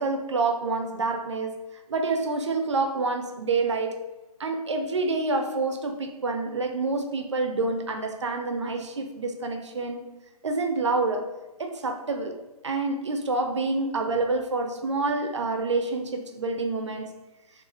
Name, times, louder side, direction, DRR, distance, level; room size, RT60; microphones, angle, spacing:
voice 1, 0.0-4.0 4.4-10.0 10.4-11.3 11.6-17.1, right 3 dB, 50° right, 5 dB, 0.4 m, -27 dB
3.8 x 2.3 x 2.9 m, 1.0 s
hypercardioid pair, 170°, 20 cm